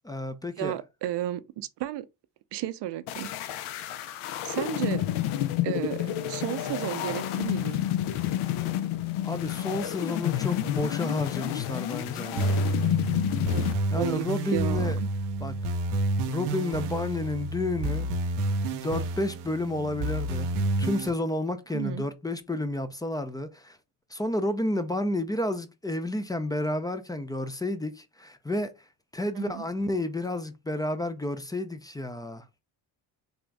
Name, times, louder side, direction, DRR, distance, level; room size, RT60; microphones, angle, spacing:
voice 1, 0.0-0.8 9.2-12.7 13.6-15.0 15.4-15.6 16.3-18.1 18.7-20.5 20.8-23.8 24.1-28.7 29.1-32.4, left 1 dB, 10° left, 0.4 m, -31 dB
voice 2, 0.6-2.1 2.5-3.3 4.5-5.1 5.6-6.0 6.3-7.9 13.5-13.6 13.9-14.3 14.5-14.9 21.7-22.0 29.4-29.7, right 13 dB, 55° right, 0.6 m, -32 dB
sound 1, 3.1-13.7, left 12 dB, 75° left, 0.7 m, -30 dB
sound 2, 12.4-21.1, right 1 dB, 90° right, 0.7 m, -29 dB
3.5 x 2.5 x 3.2 m
supercardioid pair, 70°, 50 cm